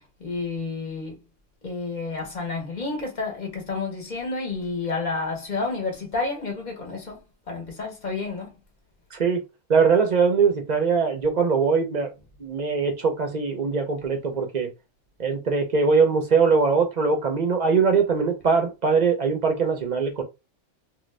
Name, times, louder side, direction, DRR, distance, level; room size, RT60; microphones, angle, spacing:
voice 1, 0.2-1.2 1.6-7.2 7.5-8.5, left 3 dB, 40° left, 1.0 m, -30 dB
voice 2, 9.7-12.1 12.4-14.7 15.2-20.2, right 5 dB, 45° right, 0.6 m, -21 dB
2.5 x 2.3 x 3.2 m
omnidirectional pair, 1.2 m